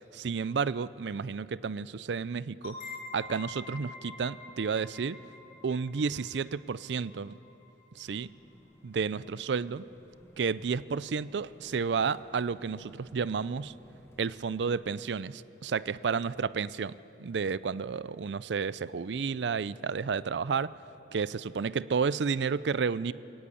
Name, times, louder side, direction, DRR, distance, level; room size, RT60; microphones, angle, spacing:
voice 1, 0.1-2.8 3.1-5.2 5.6-7.4 8.0-8.3 8.8-9.8 10.4-13.7 14.2-16.9 17.2-20.7 21.1-23.1, right 5 dB, 85° right, 17 dB, 0.5 m, -31 dB
sound 1, 2.6-8.1, left 3 dB, 50° left, 3.9 m, -47 dB
sound 2, 8.0-15.1, equal, 15° left, 1.7 m, -58 dB
22.0 x 18.5 x 8.5 m, 3.0 s
head